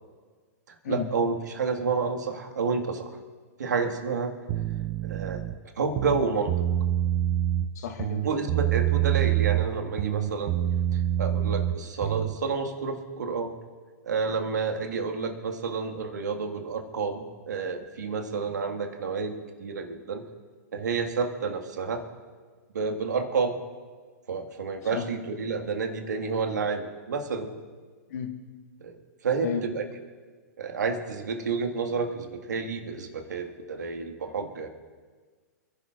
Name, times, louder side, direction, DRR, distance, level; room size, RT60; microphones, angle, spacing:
voice 1, 0.7-3.2 3.6-4.3 5.0-5.4 5.8-6.7 8.2-10.5 10.9-13.5 14.0-20.2 20.7-22.0 22.7-23.6 24.3-27.5 28.8-29.9 30.6-34.7, right 4 dB, 85° right, 5 dB, 1.7 m, -30 dB
sound 1, 4.5-5.5 5.9-7.7 8.0-9.7 10.0-12.4, right 12 dB, 40° right, 0.7 m, -26 dB
voice 2, 7.8-8.2 24.9-25.0 28.1-28.3 29.4-29.6, left 7 dB, 65° left, 5 dB, 1.5 m, -31 dB
29.0 x 11.0 x 2.5 m, 1.5 s
hypercardioid pair, 125°, 9 cm